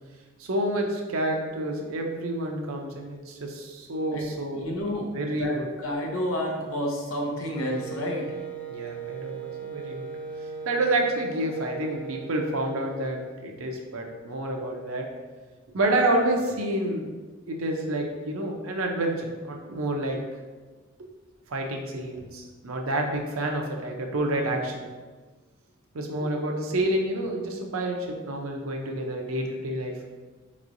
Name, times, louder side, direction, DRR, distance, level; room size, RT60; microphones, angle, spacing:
voice 1, 0.4-4.7 5.1-5.7 8.7-10.1 10.7-15.1 15.7-17.1 17.5-20.2 21.5-24.8 25.9-30.1, right 1 dB, 85° right, 1 dB, 0.6 m, -28 dB
voice 2, 4.5-8.3, equal, 75° left, 0 dB, 0.8 m, -30 dB
Wind instrument woodwind instrument, 7.5-13.2, right 4 dB, 10° left, 0.4 m, -38 dB
4.5 x 3.0 x 2.6 m, 1.3 s
head